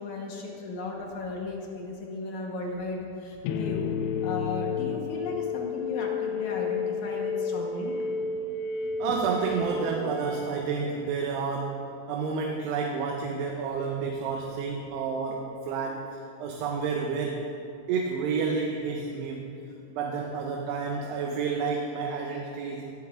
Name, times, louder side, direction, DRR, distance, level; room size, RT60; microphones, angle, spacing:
voice 1, 0.0-3.9 4.2-8.0 8.8-8.9, left 3 dB, 65° left, -1 dB, 2.1 m, -35 dB
sound 1, 3.4-11.4, left 4 dB, 80° left, 2.5 m, -31 dB
voice 2, 9.0-16.1 16.4-17.5 17.9-19.5 19.9-22.9, right 5 dB, 90° right, 0 dB, 2.9 m, -30 dB
16.5 x 13.0 x 2.5 m, 2.7 s
omnidirectional pair, 4.7 m